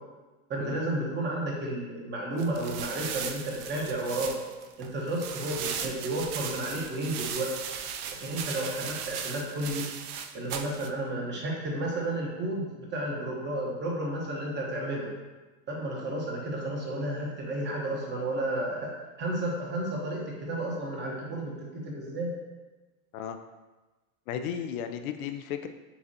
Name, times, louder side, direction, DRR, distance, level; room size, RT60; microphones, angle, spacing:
voice 1, 0.5-4.3 4.8-7.5 8.2-9.9 10.3-15.1 15.7-18.9 19.2-22.3, right 1 dB, 25° right, -2 dB, 1.0 m, -32 dB
sound 1, 2.4-10.9, right 7 dB, 75° right, 0.6 m, -37 dB
voice 2, 24.3-25.7, left 8 dB, 70° left, 8 dB, 0.5 m, -34 dB
6.9 x 2.5 x 2.7 m, 1.2 s
supercardioid pair, 125°, 45 cm